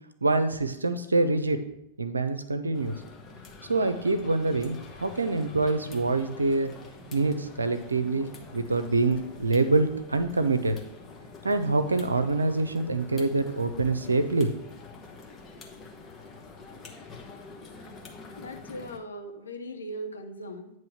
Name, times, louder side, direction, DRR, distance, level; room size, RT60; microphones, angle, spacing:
voice 1, 0.2-1.6 2.0-3.0 3.7-6.7 7.1-10.8 11.4-14.5, right 3 dB, 80° right, 10 dB, 0.5 m, -25 dB
sound 1, 2.7-19.0, left 4 dB, 25° left, 1.1 m, -46 dB
voice 2, 18.3-20.7, equal, 75° left, 4 dB, 0.8 m, -39 dB
9.0 x 3.1 x 5.7 m, 0.80 s
figure-of-eight pair, 90°, 0 cm